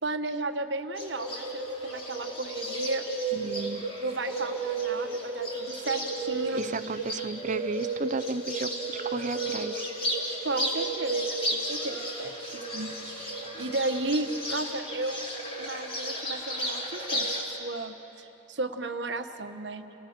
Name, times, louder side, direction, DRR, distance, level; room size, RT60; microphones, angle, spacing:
voice 1, 0.0-3.0 4.0-7.0 10.4-15.2 15.6-19.9, right 2 dB, 85° right, 7 dB, 1.2 m, -34 dB
Bird, 1.0-17.4, right 2 dB, 35° left, 4.2 m, -33 dB
voice 2, 3.3-3.8 6.6-9.9, right 3 dB, 45° right, 15 dB, 0.5 m, -34 dB
30.0 x 19.0 x 6.6 m, 3.0 s
head